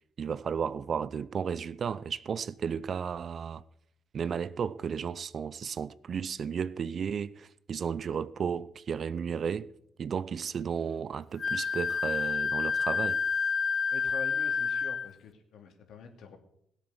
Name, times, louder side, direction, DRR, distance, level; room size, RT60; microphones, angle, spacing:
voice 1, 0.2-3.6 4.1-9.7 10.0-13.2, right 7 dB, 55° right, 0.6 m, -33 dB
Wind instrument woodwind instrument, 11.4-15.1, left 5 dB, 45° left, 0.5 m, -29 dB
voice 2, 13.9-16.4, left 6 dB, 70° left, 2.7 m, -45 dB
17.0 x 8.3 x 7.3 m
hypercardioid pair, 55°, 0 cm